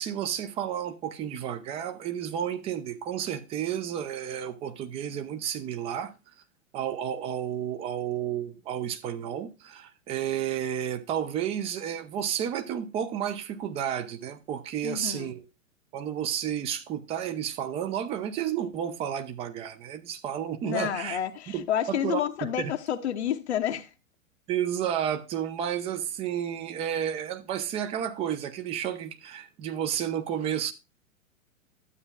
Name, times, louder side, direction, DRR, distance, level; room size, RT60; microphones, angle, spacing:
voice 1, 0.0-6.1 6.7-15.4 15.9-21.2 21.5-22.7 24.5-30.7, right 9 dB, 15° right, 0.5 m, -31 dB
voice 2, 14.8-15.3 20.6-23.9, left 10 dB, 55° left, 0.9 m, -30 dB
12.5 x 8.7 x 2.3 m
figure-of-eight pair, 105°, 41 cm